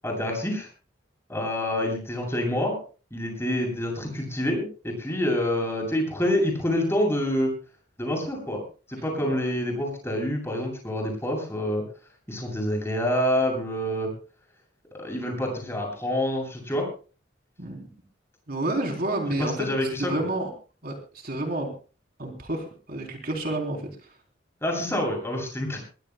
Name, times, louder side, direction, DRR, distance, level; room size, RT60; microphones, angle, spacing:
voice 1, 0.0-0.7 1.3-2.8 3.1-7.5 8.0-8.6 8.9-11.8 12.3-14.1 15.0-16.9 19.4-20.1 24.6-25.8, left 1 dB, 15° left, 1 dB, 8.0 m, -27 dB
voice 2, 18.5-20.5 20.8-21.7 22.2-23.9, right 1 dB, 50° right, 2 dB, 3.5 m, -30 dB
23.0 x 20.5 x 2.2 m, 0.37 s
head